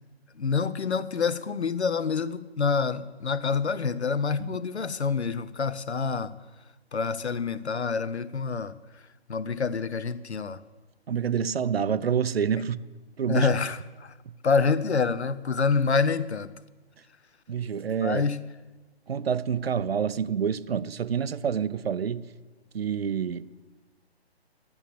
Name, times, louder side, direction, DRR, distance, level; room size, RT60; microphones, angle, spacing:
voice 1, 0.4-6.3 6.9-8.7 9.3-10.6 13.3-14.1 14.4-16.5 18.0-18.4, left 5 dB, 80° left, 0.7 m, -27 dB
voice 2, 11.1-12.8 13.2-13.5 14.3-14.4 17.5-18.2 19.1-22.3 22.7-23.5, right 7 dB, 65° right, 0.5 m, -27 dB
12.0 x 7.1 x 6.9 m
figure-of-eight pair, 140°, 33 cm